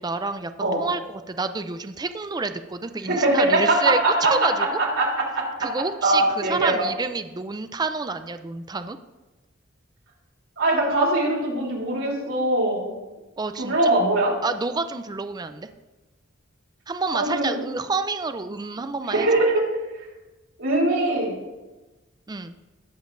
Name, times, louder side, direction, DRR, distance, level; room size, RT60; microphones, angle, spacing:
voice 1, 0.0-4.8 5.6-9.0 13.4-13.8 14.4-15.7 16.9-19.3 22.3-22.5, right 3 dB, 20° right, 10 dB, 0.4 m, -28 dB
voice 2, 3.1-4.5 4.8-5.7 6.0-6.7 10.6-12.9 13.6-14.3 17.1-17.6 19.1-19.6 20.6-21.4, right 2 dB, 85° right, -2 dB, 3.4 m, -22 dB
19.5 x 7.2 x 2.6 m, 1.1 s
head